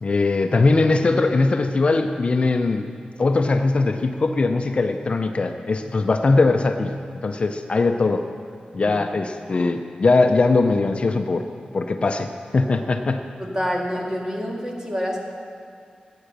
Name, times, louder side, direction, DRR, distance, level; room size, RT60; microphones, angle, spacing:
voice 1, 0.0-2.9 3.2-6.9 7.2-8.2 8.7-11.5 11.7-13.2, left 3 dB, 40° left, 6 dB, 0.6 m, -20 dB
voice 2, 13.4-15.2, equal, 25° right, -1 dB, 2.0 m, -27 dB
15.0 x 8.8 x 6.7 m, 2.3 s
wide cardioid pair, 125°, 3 cm